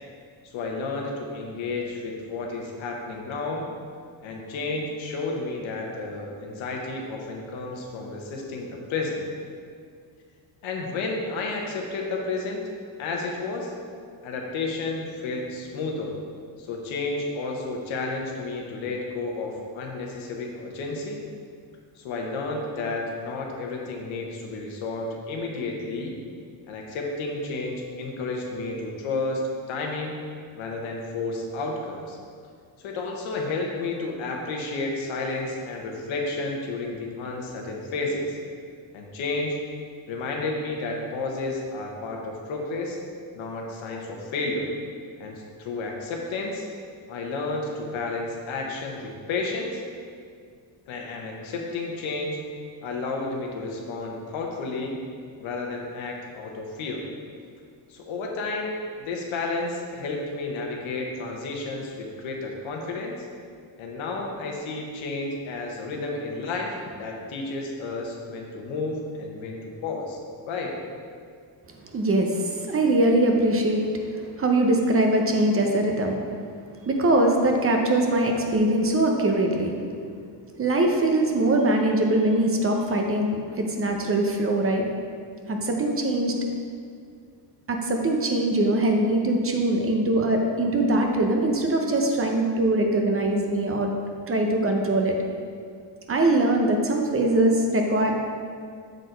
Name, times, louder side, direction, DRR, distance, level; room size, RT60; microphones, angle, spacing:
voice 1, 0.5-3.6 4.2-9.2 10.6-12.7 13.0-13.7 14.2-16.1 16.6-21.2 22.0-26.1 26.7-29.4 29.7-30.1 30.6-32.2 32.8-38.4 38.9-39.6 40.1-43.0 43.3-44.7 45.2-46.6 47.1-49.8 50.9-52.4 52.8-55.0 55.4-57.1 57.9-63.3 63.8-70.2 70.5-70.8, left 3 dB, 90° left, 0 dB, 1.1 m, -31 dB
voice 2, 71.9-76.2 76.9-79.7 80.6-84.8 85.5-86.4 87.7-93.9 94.3-95.2 96.1-98.1, right 1 dB, 30° right, 2 dB, 0.7 m, -22 dB
6.3 x 4.0 x 4.5 m, 2.2 s
cardioid pair, 105°, 46 cm